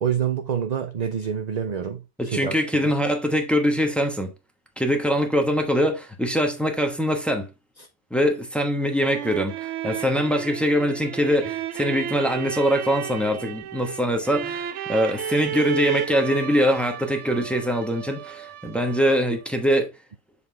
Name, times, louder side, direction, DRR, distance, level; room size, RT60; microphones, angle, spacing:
voice 1, 0.0-2.9 7.8-7.9, right 8 dB, 50° right, 0.5 m, -27 dB
voice 2, 2.2-4.3 4.8-7.5 8.1-19.9, equal, ahead, 1.1 m, -23 dB
sound 1, 8.8-19.5, right 10 dB, 75° right, 0.9 m, -33 dB
7.1 x 4.1 x 3.3 m
omnidirectional pair, 1.2 m